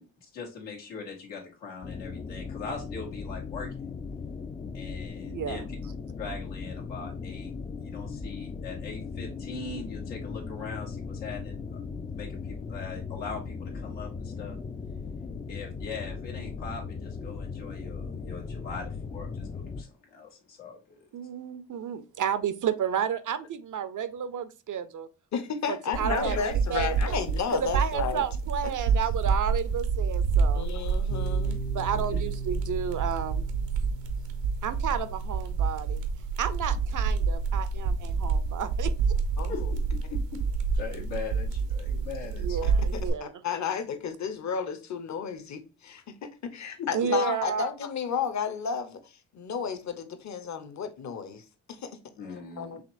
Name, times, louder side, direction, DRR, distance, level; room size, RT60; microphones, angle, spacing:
voice 1, 0.0-3.7 4.7-5.6 6.2-7.5 7.8-11.8 12.1-14.6 15.5-21.0 26.2-26.4 32.1-32.2 39.5-40.4 40.7-42.6 46.8-46.9 52.2-52.8, left 5 dB, 85° left, 1.5 m, -41 dB
sound 1, 1.8-19.8, left 5 dB, 20° left, 0.4 m, -38 dB
voice 2, 5.3-5.6 21.1-25.1 25.7-27.2 27.5-30.7 31.7-33.5 34.6-36.0 36.4-38.9 42.4-43.3 46.9-47.7, right 8 dB, 45° right, 0.5 m, -31 dB
voice 3, 25.3-28.2 30.5-31.6 39.4-39.7 42.6-52.0 52.3-52.8, left 6 dB, 40° left, 0.8 m, -33 dB
sound 2, 25.9-43.1, right 5 dB, 75° right, 0.9 m, -28 dB
Piano, 31.1-38.5, right 3 dB, 55° left, 1.1 m, -41 dB
5.0 x 2.9 x 2.5 m
supercardioid pair, 55°, 43 cm